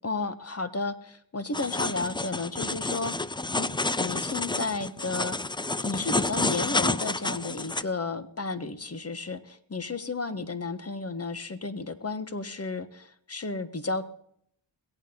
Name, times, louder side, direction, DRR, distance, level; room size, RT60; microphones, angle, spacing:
voice 1, 0.0-3.1 3.5-3.7 4.0-5.4 5.8-14.1, left 3 dB, 30° left, 11 dB, 1.4 m, -33 dB
sound 1, 1.5-7.8, left 2 dB, 10° left, 0.5 m, -29 dB
22.0 x 9.0 x 3.9 m, 0.68 s
cardioid pair, 45°, 46 cm